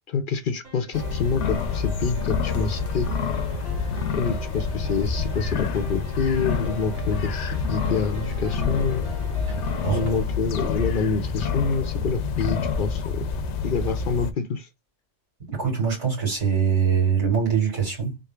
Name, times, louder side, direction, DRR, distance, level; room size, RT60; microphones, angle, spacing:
voice 1, 0.1-3.1 4.1-9.0 9.9-13.2 13.6-14.7, left 5 dB, 60° left, 0.6 m, -27 dB
sound 1, 0.6-10.2, equal, 65° right, 1.7 m, -42 dB
sound 2, 0.9-14.3, left 5 dB, 85° left, 0.9 m, -27 dB
voice 2, 15.5-18.2, right 7 dB, 90° right, 2.7 m, -23 dB
3.7 x 3.3 x 2.3 m
omnidirectional pair, 1.2 m